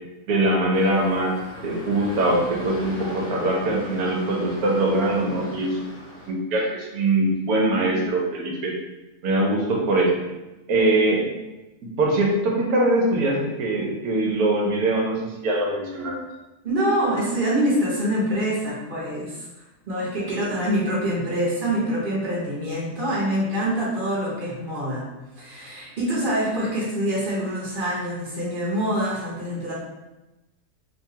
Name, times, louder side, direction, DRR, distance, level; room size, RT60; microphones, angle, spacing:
voice 1, 0.3-1.4 1.6-5.8 6.3-8.7 9.2-10.1 10.7-11.3 11.8-16.2, right 2 dB, 75° right, -1 dB, 1.1 m, -22 dB
sound 1, 0.7-6.3, equal, 15° left, 0.5 m, -40 dB
voice 2, 16.6-19.4 19.9-25.1 25.4-29.7, equal, 40° right, -6 dB, 0.8 m, -25 dB
3.1 x 2.2 x 2.8 m, 1.0 s
omnidirectional pair, 1.7 m